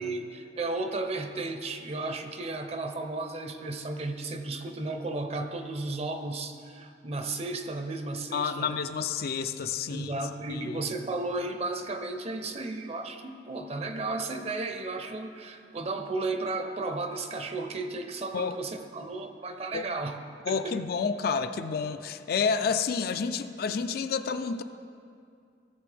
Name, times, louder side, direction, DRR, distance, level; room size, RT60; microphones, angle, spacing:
voice 1, 0.0-8.8 9.9-20.2 20.5-20.8, right 2 dB, 35° right, 7 dB, 0.6 m, -34 dB
voice 2, 8.3-10.1 10.5-10.8 18.3-18.6 19.7-19.9 20.5-24.6, left 5 dB, 55° left, 10 dB, 0.4 m, -30 dB
17.0 x 6.8 x 3.4 m, 2.3 s
head